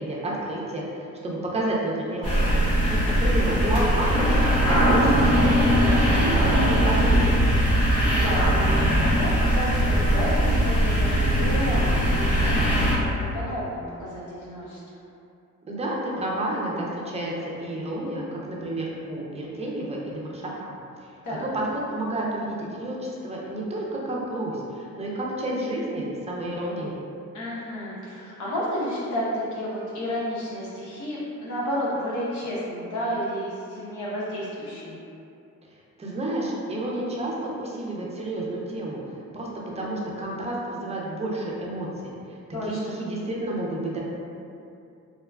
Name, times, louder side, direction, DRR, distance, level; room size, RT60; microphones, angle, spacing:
voice 1, 0.0-7.4 15.6-20.7 21.0-21.1 21.4-26.9 36.0-39.0 39.3-39.5 39.8-42.4 42.6-44.0, right 1 dB, 20° right, -4 dB, 0.5 m, -30 dB
sound 1, 2.2-12.9, equal, 55° left, 1.3 m, -20 dB
voice 2, 2.8-3.1 8.2-8.7 9.0-14.8 21.2-21.5 27.3-35.0 42.5-42.9, equal, 80° left, -7 dB, 0.9 m, -31 dB
2.9 x 2.2 x 2.2 m, 2.6 s
cardioid pair, 90°, 30 cm